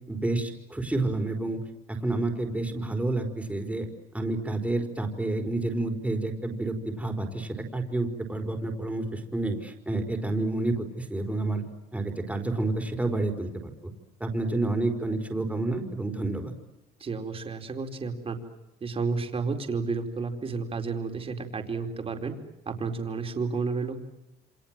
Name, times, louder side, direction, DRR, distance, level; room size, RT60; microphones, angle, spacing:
voice 1, 0.1-1.6 1.9-3.9 4.1-11.6 11.9-13.9 14.2-16.5, right 2 dB, 10° right, 4 dB, 4.6 m, -29 dB
voice 2, 17.0-18.4 18.8-22.3 22.7-24.1, right 4 dB, 35° right, 4 dB, 4.4 m, -31 dB
29.0 x 26.0 x 7.6 m, 0.95 s
cardioid pair, 110°, 17 cm